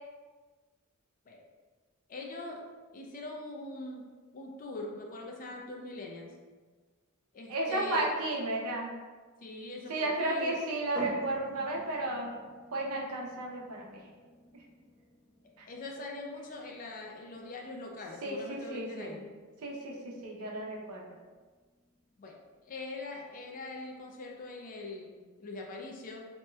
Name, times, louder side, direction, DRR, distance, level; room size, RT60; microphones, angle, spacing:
voice 1, 2.1-2.7 2.9-4.0 4.3-6.3 7.3-8.1 9.4-10.6 15.7-19.2 22.2-22.4 22.6-26.2, left 2 dB, 40° left, 0 dB, 0.4 m, -42 dB
voice 2, 7.5-8.9 9.9-12.3 12.7-14.0 15.6-15.7 18.2-19.2 19.6-20.0 20.2-21.0, right 2 dB, 90° right, -2 dB, 0.6 m, -33 dB
sound 1, 10.9-24.4, right 1 dB, 65° left, 1.0 m, -50 dB
3.1 x 2.9 x 2.2 m, 1.4 s
head